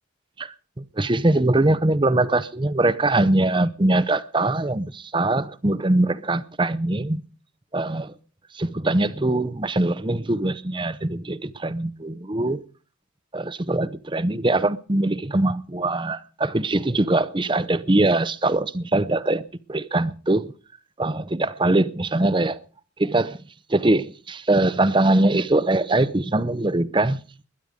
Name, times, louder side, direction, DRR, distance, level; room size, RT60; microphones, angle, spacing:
voice 1, 0.4-7.2 7.7-8.1 8.5-12.6 13.3-19.4 19.7-20.5 21.0-22.6 23.0-23.4 23.7-27.2, right 2 dB, 25° right, 0.7 m, -22 dB
21.0 x 11.0 x 5.1 m
head